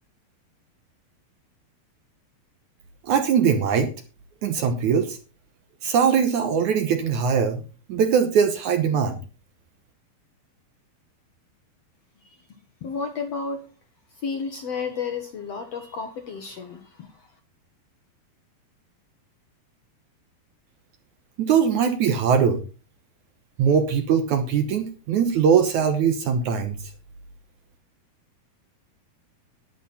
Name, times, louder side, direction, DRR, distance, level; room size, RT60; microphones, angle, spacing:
voice 1, 3.0-3.9 4.4-5.2 5.8-7.6 7.9-9.2 21.4-22.6 23.6-26.8, right 7 dB, 65° right, 8 dB, 2.1 m, -21 dB
voice 2, 12.2-13.7 14.1-17.3, left 5 dB, 60° left, 5 dB, 1.8 m, -32 dB
12.0 x 10.5 x 4.2 m, 0.33 s
omnidirectional pair, 4.3 m